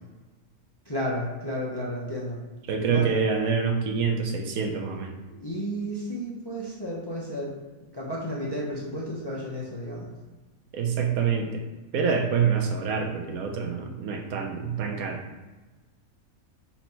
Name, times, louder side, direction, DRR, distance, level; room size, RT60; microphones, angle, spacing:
voice 1, 0.9-2.4 2.9-3.2 5.3-7.5 7.9-10.1, equal, 25° left, -5 dB, 0.5 m, -32 dB
voice 2, 2.7-5.2 10.7-11.6 11.9-15.2, right 6 dB, 80° right, 3 dB, 1.1 m, -26 dB
4.3 x 2.8 x 4.3 m, 1.2 s
omnidirectional pair, 1.5 m